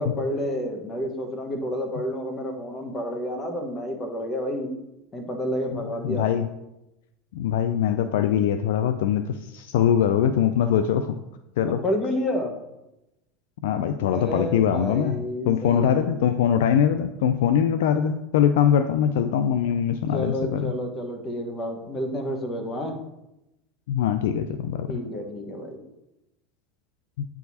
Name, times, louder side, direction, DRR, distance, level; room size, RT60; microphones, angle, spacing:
voice 1, 0.0-4.7 5.1-6.3 11.6-12.5 14.0-16.2 20.1-23.0 24.9-25.8, equal, 30° left, 4 dB, 1.3 m, -30 dB
voice 2, 6.0-6.5 7.3-11.1 11.6-11.8 13.6-20.7 23.9-24.9 27.2-27.3, left 9 dB, 75° left, 10 dB, 0.3 m, -22 dB
9.0 x 4.6 x 2.8 m, 0.92 s
hypercardioid pair, 90°, 0 cm